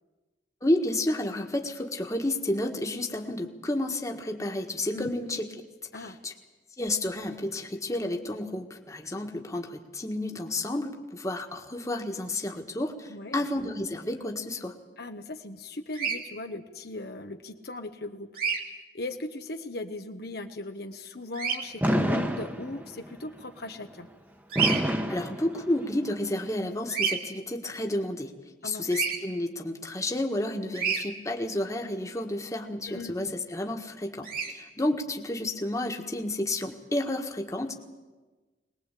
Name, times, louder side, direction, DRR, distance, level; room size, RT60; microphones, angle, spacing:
voice 1, 0.6-5.5 5.9-6.3 6.8-14.7 25.1-28.3 28.6-37.7, left 1 dB, 20° left, 3 dB, 1.7 m, -31 dB
voice 2, 13.1-13.4 15.0-18.3 18.6-24.1 28.6-28.9 32.9-33.3, left 2 dB, 60° left, 5 dB, 1.1 m, -39 dB
Bird vocalization bird call bird song, 15.9-16.2 18.4-18.6 21.3-21.6 24.5-24.8 26.9-27.2 28.9-29.2 30.7-31.0 34.2-34.5, right 6 dB, 55° right, 2.8 m, -28 dB
Fireworks, 21.8-23.1 24.6-26.1, equal, 10° right, 1.3 m, -28 dB
22.0 x 20.0 x 8.4 m, 1.3 s
head